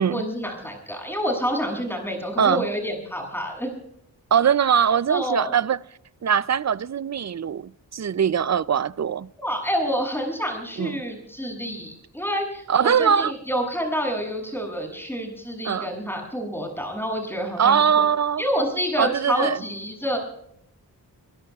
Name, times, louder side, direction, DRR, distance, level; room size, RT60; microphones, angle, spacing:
voice 1, 0.0-3.7 5.1-5.5 9.4-17.8 18.4-20.2, equal, 5° left, 7.4 m, -28 dB
voice 2, 4.3-5.8 6.2-9.3 10.8-11.0 12.7-13.3 15.6-15.9 17.6-18.4 19.0-19.6, right 8 dB, 45° right, 0.5 m, -21 dB
23.0 x 22.0 x 2.4 m
wide cardioid pair, 115°, 37 cm